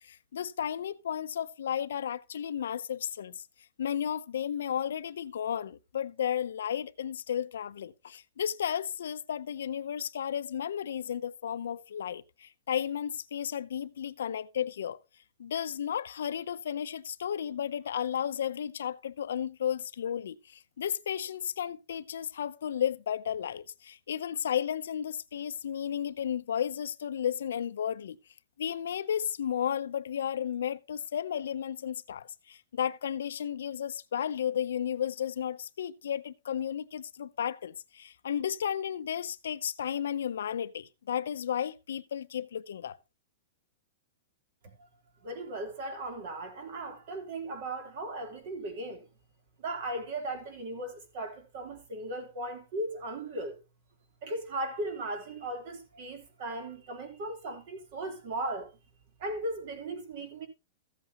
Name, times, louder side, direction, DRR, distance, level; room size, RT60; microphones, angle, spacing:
voice 1, 0.1-3.3 3.8-15.0 15.4-20.4 20.8-28.2 28.6-43.0, left 9 dB, 90° left, 0.6 m, -33 dB
voice 2, 45.2-49.0 49.6-53.5 54.2-58.7 59.2-60.5, right 1 dB, 45° right, 3.2 m, -37 dB
14.5 x 8.1 x 2.9 m
supercardioid pair, 170°, 0 cm